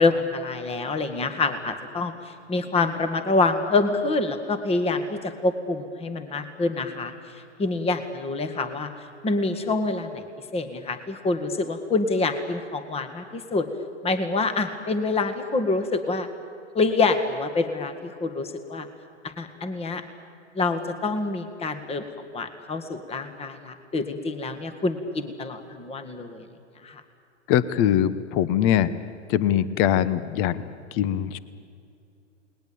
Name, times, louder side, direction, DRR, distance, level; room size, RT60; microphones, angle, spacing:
voice 1, 0.0-8.9 9.2-13.7 14.0-16.3 16.7-18.9 19.4-20.0 20.5-22.1 22.3-26.5 26.8-27.0, left 3 dB, 15° left, 9 dB, 1.9 m, -26 dB
voice 2, 27.5-28.9 29.3-31.4, left 10 dB, 35° left, 16 dB, 1.1 m, -22 dB
29.0 x 20.0 x 8.7 m, 2.5 s
hypercardioid pair, 115°, 36 cm